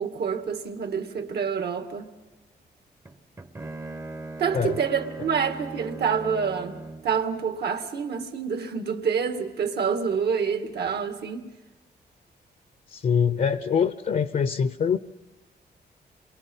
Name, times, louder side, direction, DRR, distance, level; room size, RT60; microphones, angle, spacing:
voice 1, 0.0-2.2 4.4-11.5, right 6 dB, 70° right, 2.1 m, -27 dB
Bowed string instrument, 3.1-7.2, right 2 dB, 15° right, 0.7 m, -39 dB
voice 2, 12.9-15.0, left 7 dB, 50° left, 0.7 m, -24 dB
29.0 x 23.0 x 5.5 m
wide cardioid pair, 145°, 17 cm